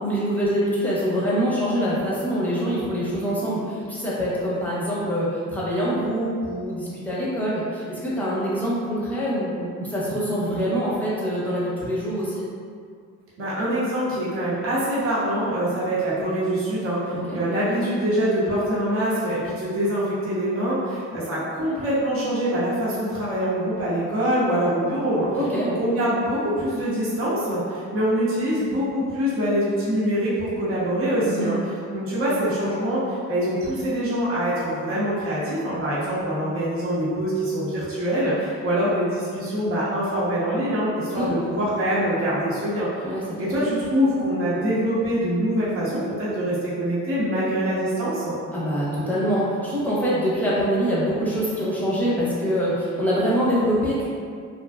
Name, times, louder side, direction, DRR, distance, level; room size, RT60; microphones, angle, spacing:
voice 1, 0.0-12.4 17.1-17.4 25.3-25.7 31.2-31.5 41.1-41.3 43.0-43.5 48.5-54.1, equal, 5° left, -8 dB, 0.8 m, -24 dB
voice 2, 13.4-25.3 25.6-31.6 31.9-43.1 43.4-48.4, equal, 45° right, -10 dB, 0.8 m, -24 dB
2.5 x 2.2 x 2.3 m, 2.2 s
cardioid pair, 90°, 30 cm